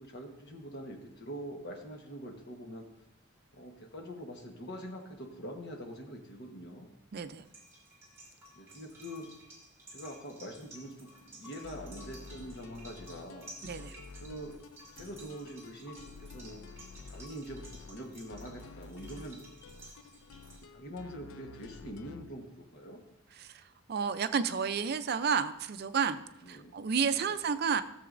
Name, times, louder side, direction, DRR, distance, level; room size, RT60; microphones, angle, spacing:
voice 1, 0.0-2.9 3.5-6.9 8.5-9.3 9.9-13.5 14.2-14.6 15.0-16.6 17.1-19.4 20.7-23.0 26.4-26.8 27.1-27.3, equal, 55° left, 3 dB, 1.2 m, -44 dB
voice 2, 7.1-7.5 13.6-14.0 23.4-27.8, right 6 dB, 50° right, 10 dB, 0.4 m, -31 dB
sound 1, 7.4-20.6, right 1 dB, 15° right, 2.3 m, -54 dB
sound 2, 11.6-22.3, left 4 dB, 80° left, 0.4 m, -50 dB
14.0 x 6.9 x 2.5 m, 0.85 s
head